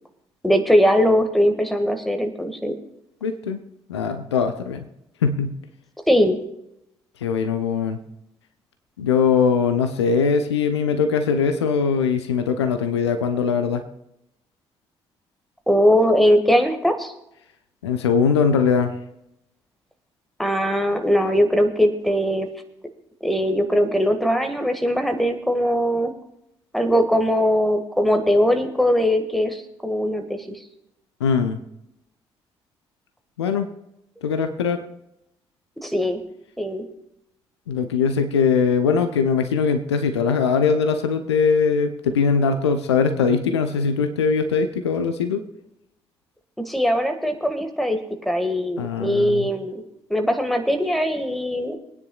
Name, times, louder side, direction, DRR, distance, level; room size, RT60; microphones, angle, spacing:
voice 1, 0.4-2.7 6.1-6.4 15.7-17.1 20.4-22.5 23.2-26.1 26.7-30.6 35.8-36.2 36.6-36.8 46.7-48.0 48.3-49.8 50.1-51.8, equal, ahead, 6 dB, 1.8 m, -20 dB
voice 2, 3.2-3.6 3.9-4.8 5.2-5.5 7.2-8.0 9.0-13.8 17.8-18.9 31.2-31.6 33.4-33.7 34.2-34.8 37.7-45.4 48.8-49.5, left 6 dB, 80° left, 8 dB, 0.7 m, -21 dB
24.5 x 9.7 x 2.4 m, 0.81 s
figure-of-eight pair, 40°, 14 cm